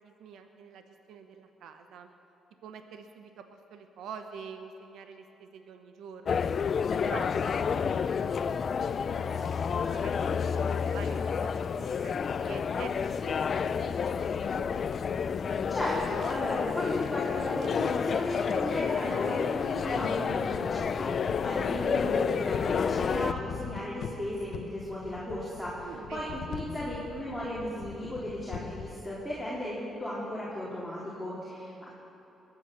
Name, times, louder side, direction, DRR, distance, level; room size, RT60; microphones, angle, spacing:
voice 1, 0.0-2.1 2.6-6.5 7.0-7.9 8.4-14.3 14.6-14.9 25.8-26.6, right 6 dB, 80° right, 7 dB, 1.0 m, -47 dB
sound 1, 6.3-23.3, left 6 dB, 50° left, 0.4 m, -30 dB
voice 2, 15.7-32.0, left 1 dB, 5° left, -8 dB, 3.4 m, -35 dB
sound 2, 19.8-29.0, left 7 dB, 70° left, 0.8 m, -42 dB
21.0 x 8.8 x 6.4 m, 2.9 s
cardioid pair, 90°, 0 cm